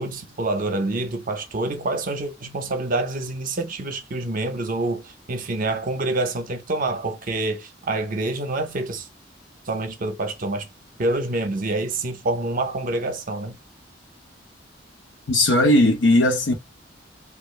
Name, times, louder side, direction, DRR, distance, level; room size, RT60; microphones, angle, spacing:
voice 1, 0.0-9.1 9.7-10.7 11.0-13.6, right 2 dB, 45° right, 0.6 m, -27 dB
voice 2, 15.3-16.5, left 1 dB, 75° left, 0.8 m, -17 dB
3.1 x 2.3 x 3.1 m
head